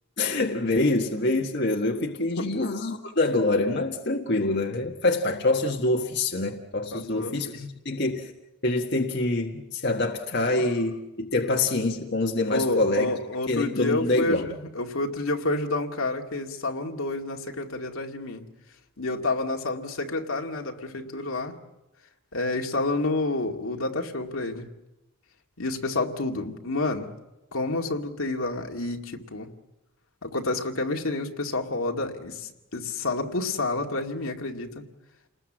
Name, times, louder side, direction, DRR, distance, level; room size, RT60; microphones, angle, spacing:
voice 1, 0.2-8.3 8.6-13.1 13.5-14.4, left 2 dB, 50° left, 1.6 m, -25 dB
voice 2, 6.9-7.5 12.5-18.4 19.0-21.5 22.3-24.7 25.6-27.1 27.5-29.5 30.2-34.8, left 2 dB, 75° left, 2.3 m, -29 dB
30.0 x 20.5 x 7.6 m
head